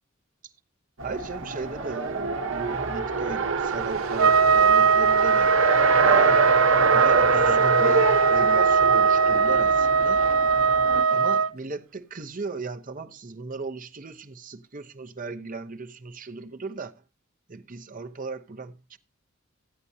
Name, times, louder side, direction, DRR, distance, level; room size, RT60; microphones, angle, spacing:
voice 1, 1.0-5.5 6.0-6.4 6.9-10.2 11.1-16.9 17.5-19.0, right 4 dB, 40° right, 0.8 m, -36 dB
Race car auto racing, 1.0-11.0, right 4 dB, 65° right, 1.2 m, -26 dB
Trumpet, 4.2-11.5, right 5 dB, 85° right, 0.6 m, -20 dB
15.0 x 9.7 x 2.7 m
head